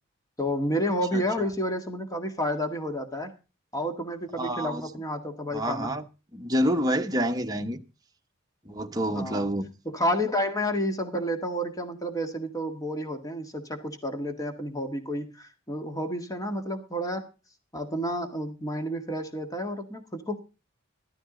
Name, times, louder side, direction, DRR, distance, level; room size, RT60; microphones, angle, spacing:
voice 1, 0.4-3.3 3.7-5.9 9.1-9.4 9.9-17.3 17.7-20.4, equal, 20° left, 1.8 m, -30 dB
voice 2, 1.1-1.5 4.4-4.9 5.5-6.0 6.3-7.8 8.6-9.7, equal, 20° right, 1.2 m, -28 dB
13.5 x 13.5 x 3.9 m
head